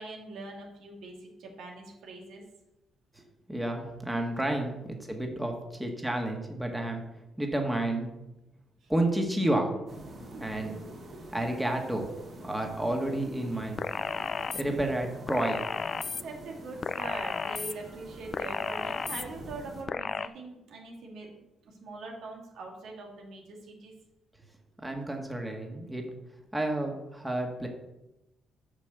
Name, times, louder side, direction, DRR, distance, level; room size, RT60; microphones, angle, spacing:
voice 1, 0.0-2.4 8.8-8.9 10.3-10.4 11.2-11.3 13.5-13.7 14.2-14.3 16.2-23.9, right 3 dB, 75° right, 0 dB, 2.4 m, -43 dB
voice 2, 3.5-7.0 7.4-8.1 8.9-9.8 10.4-10.7 11.3-12.1 12.4-13.8 14.5-15.6 24.8-26.0 26.5-27.7, right 1 dB, 5° right, 2 dB, 1.7 m, -30 dB
sound 1, 9.9-19.8, right 1 dB, 50° right, 3.3 m, -47 dB
sound 2, 13.8-14.6 15.3-16.2 16.8-17.7 18.3-19.2 19.9-20.3, left 5 dB, 40° left, 0.4 m, -33 dB
8.4 x 5.4 x 6.7 m, 0.95 s
cardioid pair, 90°, 0 cm